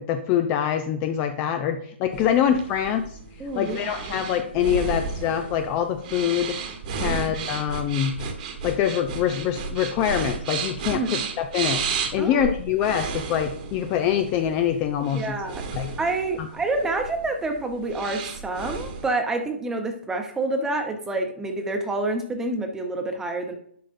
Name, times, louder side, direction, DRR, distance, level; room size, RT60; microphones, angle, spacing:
voice 1, 0.0-3.2 3.6-6.6 7.0-8.2 8.6-11.8 12.1-15.4 15.7-15.9 16.4-16.5, left 9 dB, 25° left, 7 dB, 0.5 m, -24 dB
sound 1, 2.1-19.1, right 5 dB, 40° right, 1.4 m, -33 dB
voice 2, 3.4-4.1 7.0-7.2 10.9-11.1 12.2-12.4 15.1-15.6 16.0-23.6, right 2 dB, 10° right, 4 dB, 1.0 m, -28 dB
11.5 x 5.1 x 2.6 m, 0.64 s
hypercardioid pair, 150°, 6 cm